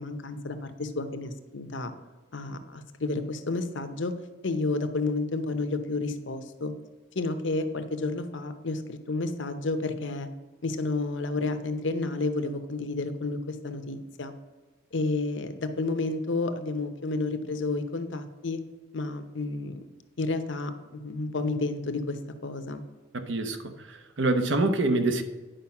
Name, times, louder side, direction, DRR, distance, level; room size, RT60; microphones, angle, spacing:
voice 1, 0.0-1.9 2.3-4.1 4.4-6.7 7.1-10.3 10.6-14.3 14.9-18.6 18.9-19.8 20.2-22.8, left 3 dB, 70° left, 8 dB, 0.8 m, -31 dB
voice 2, 23.1-23.6 23.9-25.2, right 2 dB, 70° right, 8 dB, 0.9 m, -25 dB
10.0 x 5.1 x 5.9 m, 1.3 s
head